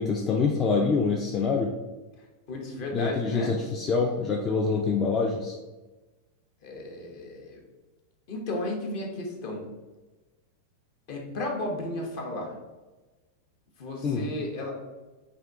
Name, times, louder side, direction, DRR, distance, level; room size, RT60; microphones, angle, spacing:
voice 1, 0.0-1.7 2.9-5.6 14.0-14.3, left 4 dB, 25° left, 0 dB, 0.4 m, -25 dB
voice 2, 2.5-3.6 6.6-7.6 8.3-9.6 11.1-12.5 13.8-14.7, left 1 dB, 45° left, 0 dB, 1.0 m, -34 dB
3.5 x 2.9 x 3.5 m, 1.2 s
figure-of-eight pair, 90°, 0 cm